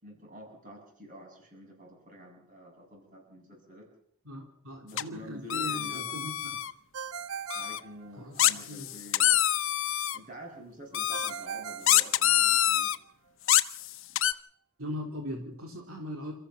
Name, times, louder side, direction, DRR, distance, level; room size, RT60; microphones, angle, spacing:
voice 1, 0.0-3.9 4.8-6.2 7.5-12.9, equal, 35° right, 2 dB, 7.7 m, -48 dB
voice 2, 4.2-6.3 8.2-8.9 14.8-16.3, equal, 75° right, 3 dB, 3.2 m, -39 dB
sound 1, 5.0-5.1 5.5-6.7 7.5-7.8 8.4-10.2 10.9-11.3 11.9-13.0 13.5-14.3, left 12 dB, 60° left, 1.0 m, -25 dB
Ringtone, 6.9-8.6 11.1-12.8, right 7 dB, 90° right, 1.6 m, -40 dB
28.0 x 14.5 x 7.1 m, 0.66 s
head